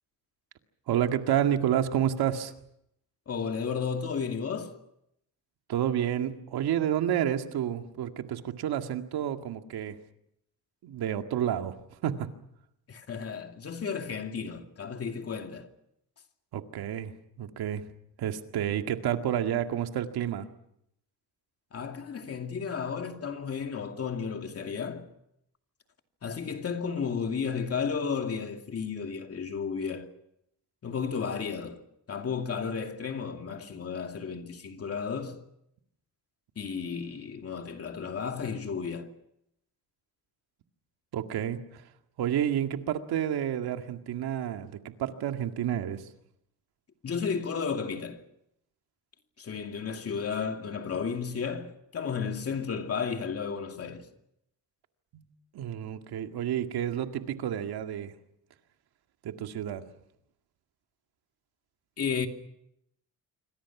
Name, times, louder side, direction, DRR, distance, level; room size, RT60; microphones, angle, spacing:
voice 1, 0.9-2.5 5.7-10.0 10.8-11.8 12.0-12.3 16.5-17.1 17.4-17.8 18.2-20.5 41.1-41.9 42.2-46.1 55.1-55.3 55.5-58.1 59.2-59.8, right 10 dB, 85° right, 2.1 m, -30 dB
voice 2, 3.3-4.8 12.9-15.7 21.7-25.1 26.2-30.1 30.8-31.8 32.1-35.4 36.6-39.1 47.0-48.2 49.4-54.1 62.0-62.3, left 6 dB, 40° left, 2.5 m, -33 dB
27.0 x 25.5 x 6.1 m
cardioid pair, 150°, 37 cm